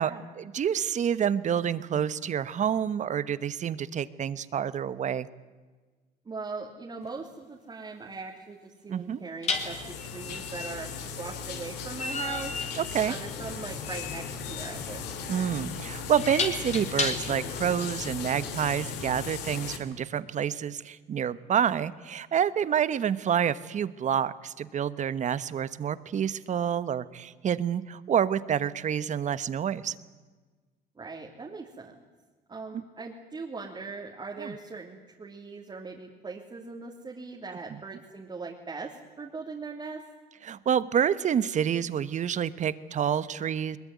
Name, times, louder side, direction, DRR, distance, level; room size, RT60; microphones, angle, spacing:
voice 1, 0.0-5.3 8.9-9.2 12.7-13.1 15.3-29.9 32.7-32.8 34.4-34.5 37.7-37.8 40.4-43.8, right 8 dB, 45° right, 16 dB, 1.1 m, -28 dB
voice 2, 6.2-12.6 13.0-15.0 31.0-32.0 32.5-40.0, right 4 dB, 25° right, -1 dB, 2.9 m, -40 dB
sound 1, 7.0-7.2 9.4-17.5, left 4 dB, 40° left, 3.6 m, -35 dB
sound 2, 9.5-19.8, left 6 dB, 85° left, 3.0 m, -37 dB
21.5 x 21.5 x 9.5 m, 1.3 s
cardioid pair, 110°, 17 cm